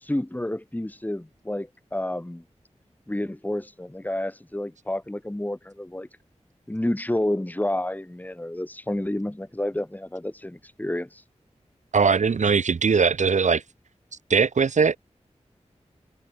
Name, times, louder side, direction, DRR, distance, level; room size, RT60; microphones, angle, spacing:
voice 1, 0.0-2.4 3.1-6.1 6.7-11.2, left 1 dB, 15° left, 2.2 m, -30 dB
voice 2, 11.9-13.6 14.3-15.0, right 5 dB, 80° right, 1.2 m, -20 dB
wide cardioid pair, 55°, 12 cm